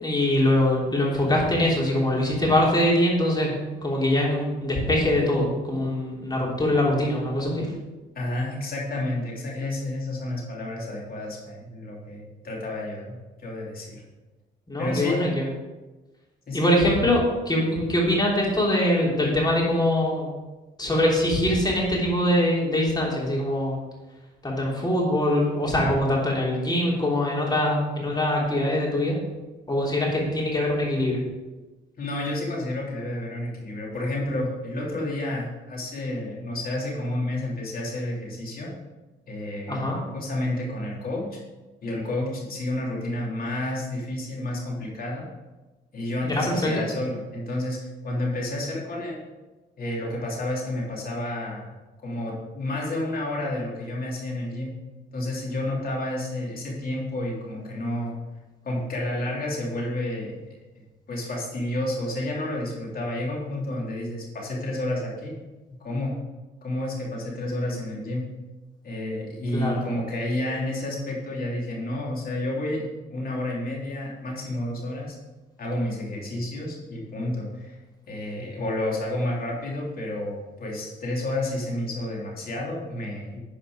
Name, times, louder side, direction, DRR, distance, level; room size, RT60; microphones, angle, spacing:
voice 1, 0.0-3.5 3.8-7.7 14.7-15.5 16.5-20.3 20.8-23.8 24.4-29.2 29.7-31.2 39.7-40.0 46.2-46.7 69.5-69.8, left 1 dB, 20° left, -3 dB, 3.1 m, -23 dB
voice 2, 8.1-14.0 14.8-15.3 16.5-16.7 32.0-38.7 39.3-41.4 41.8-45.2 45.9-49.2 49.8-51.7 52.0-54.7 55.1-58.1 58.6-60.4 61.1-65.3 65.7-66.2 66.6-68.2 68.8-72.8 73.1-75.2 75.6-77.8 78.1-83.4, left 1 dB, 50° left, -3 dB, 3.2 m, -30 dB
10.0 x 5.0 x 5.0 m, 1.2 s
cardioid pair, 90°, 20 cm